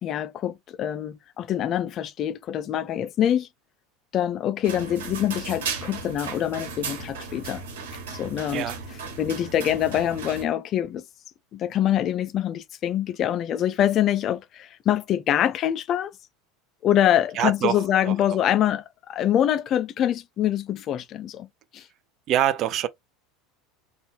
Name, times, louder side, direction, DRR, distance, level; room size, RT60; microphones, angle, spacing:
voice 1, 0.0-3.5 4.1-7.6 8.1-8.7 9.2-11.0 11.5-16.1 16.8-21.5 21.7-21.8, left 11 dB, 45° left, 0.4 m, -25 dB
sound 1, 4.6-10.4, right 5 dB, 70° right, 1.3 m, -35 dB
voice 2, 17.4-18.1 22.3-22.9, right 11 dB, 45° right, 0.6 m, -25 dB
3.9 x 2.4 x 3.6 m
hypercardioid pair, 75°, 0 cm